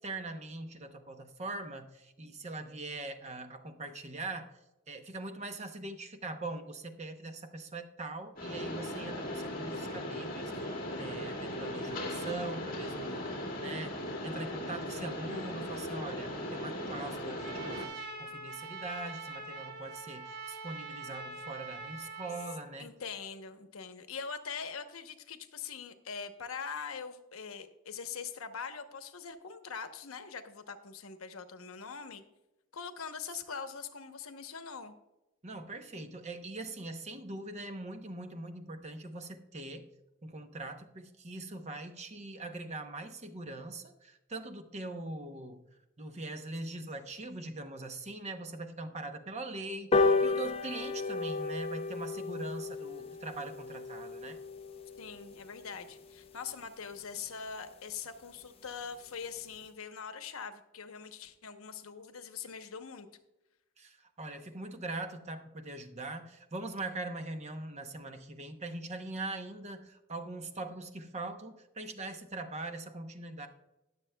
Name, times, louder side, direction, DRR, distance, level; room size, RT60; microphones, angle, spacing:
voice 1, 0.0-4.5 4.9-14.0 14.2-22.9 35.4-39.9 40.2-45.6 46.0-54.4 63.8-73.5, right 2 dB, 30° right, 7 dB, 0.8 m, -42 dB
Mechanisms, 8.4-17.9, left 1 dB, 45° left, 2.0 m, -38 dB
voice 2, 13.0-14.1 22.8-32.2 32.7-34.9 55.0-63.1, left 6 dB, 85° left, 9 dB, 0.9 m, -43 dB
Trumpet, 17.4-22.7, right 3 dB, 50° right, 1.3 m, -44 dB
sound 1, 49.9-56.7 57.1-57.2 57.5-57.6 57.9-58.0 58.3-58.4 58.7-58.9 59.4-59.5, left 3 dB, 30° left, 0.5 m, -33 dB
20.0 x 7.0 x 2.2 m, 0.97 s
head